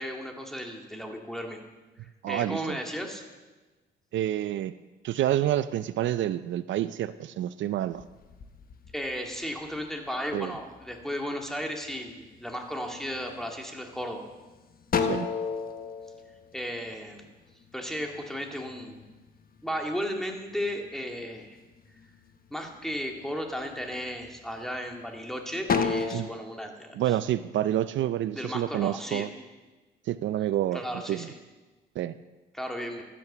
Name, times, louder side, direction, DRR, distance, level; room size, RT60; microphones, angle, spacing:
voice 1, 0.0-1.6 2.3-3.2 8.9-14.2 16.5-17.3 17.7-19.1 19.6-21.6 22.5-27.2 28.3-29.3 30.7-31.4 32.5-33.1, equal, ahead, 2 dB, 2.0 m, -35 dB
voice 2, 2.2-2.8 4.1-4.7 5.0-8.0 10.3-10.5 15.0-15.3 26.1-26.3 27.0-29.3 30.1-30.8 31.1-31.3 32.0-32.1, right 12 dB, 70° right, 14 dB, 0.5 m, -28 dB
sound 1, 7.9-9.9 10.4-11.0 11.6-12.1 12.5-13.5 13.9-14.0 14.4-17.3 17.6-19.9 20.3-21.3 21.7-22.4 22.9-23.1 23.6-25.2 25.6-26.2, left 5 dB, 45° left, 1.1 m, -31 dB
12.5 x 8.5 x 6.7 m, 1.2 s
cardioid pair, 90°, 20 cm